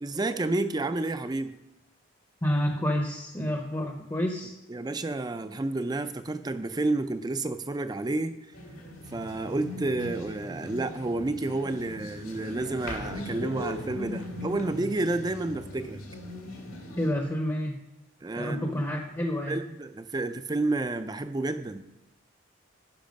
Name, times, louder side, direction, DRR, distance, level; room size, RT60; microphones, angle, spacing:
voice 1, 0.0-1.6 4.7-8.4 9.1-16.0 18.2-18.8 19.5-21.8, right 2 dB, 20° right, 10 dB, 0.4 m, -30 dB
voice 2, 2.4-4.5 16.9-17.8 18.4-19.6, equal, 15° left, 3 dB, 0.7 m, -29 dB
sound 1, 8.5-17.1, left 1 dB, 85° left, 2.1 m, -39 dB
10.5 x 5.6 x 5.2 m, 0.95 s
head